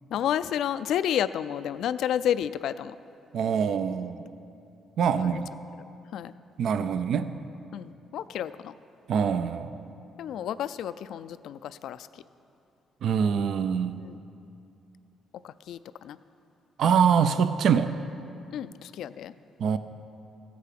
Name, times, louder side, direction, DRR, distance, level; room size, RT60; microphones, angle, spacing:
voice 1, 0.1-3.0 5.2-5.4 6.1-6.3 7.7-8.7 10.2-12.2 14.0-14.2 15.4-16.2 18.5-19.3, left 10 dB, 80° left, 14 dB, 0.3 m, -31 dB
voice 2, 3.3-4.2 5.0-5.4 6.6-7.3 9.1-9.8 13.0-13.9 16.8-17.9 19.6-19.8, right 7 dB, 70° right, 11 dB, 0.5 m, -24 dB
15.0 x 8.4 x 5.9 m, 2.7 s
cardioid pair, 90°, 0 cm